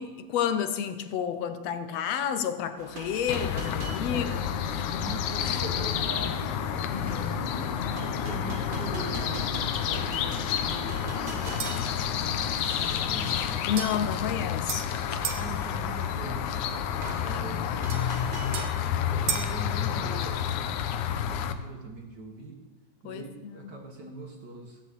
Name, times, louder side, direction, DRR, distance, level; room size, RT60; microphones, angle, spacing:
voice 1, 0.0-4.3 6.9-7.4 13.7-14.9 17.3-18.2 23.0-23.7, left 8 dB, 70° left, 10 dB, 1.9 m, -31 dB
sound 1, 2.8-18.7, right 2 dB, 55° right, 0.5 m, -43 dB
sound 2, 3.3-21.5, left 8 dB, 85° left, 2.3 m, -30 dB
voice 2, 4.1-4.5 4.8-6.6 7.1-7.8 8.0-9.5 9.8-11.8 12.6-13.6 15.1-16.7 17.1-17.7 18.8-22.6 23.0-24.8, right 2 dB, 40° right, 2 dB, 1.8 m, -43 dB
sound 3, 11.6-12.0 13.8-15.5 17.9-19.6, right 8 dB, 85° right, 2.8 m, -36 dB
16.0 x 8.3 x 8.3 m, 1.2 s
omnidirectional pair, 3.4 m